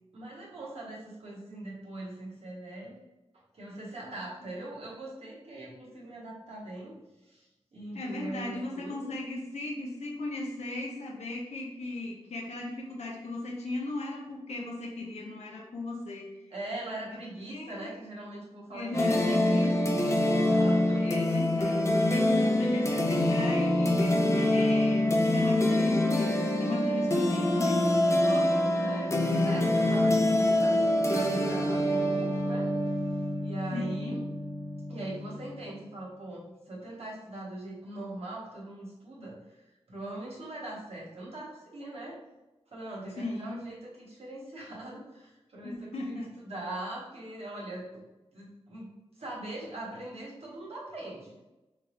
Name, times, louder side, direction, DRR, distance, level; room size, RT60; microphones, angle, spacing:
voice 1, 0.1-3.0 3.3-7.0 7.2-9.1 16.5-21.1 28.2-32.7 33.4-34.2 34.9-42.2 42.7-48.0 48.3-48.9 49.1-51.4, right 2 dB, 65° right, -4 dB, 1.4 m, -41 dB
voice 2, 7.9-16.4 17.5-17.9 18.7-19.9 20.9-27.9 33.7-34.2 43.2-43.6 45.6-46.3, left 2 dB, 80° left, -2 dB, 0.9 m, -37 dB
sound 1, 18.9-35.5, left 1 dB, 25° left, 0.6 m, -26 dB
3.9 x 3.5 x 2.6 m, 1.0 s
cardioid pair, 60°, 11 cm